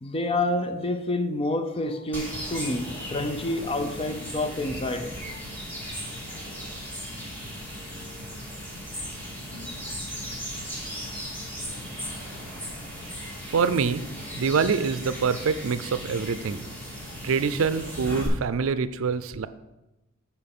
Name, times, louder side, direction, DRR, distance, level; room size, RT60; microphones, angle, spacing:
voice 1, 0.0-5.4, left 2 dB, 30° left, 0.6 m, -28 dB
sound 1, 2.1-18.3, equal, 10° left, 2.1 m, -37 dB
voice 2, 13.5-14.1 14.3-16.7 17.2-19.5, right 5 dB, 80° right, 0.4 m, -25 dB
8.7 x 4.5 x 6.0 m
head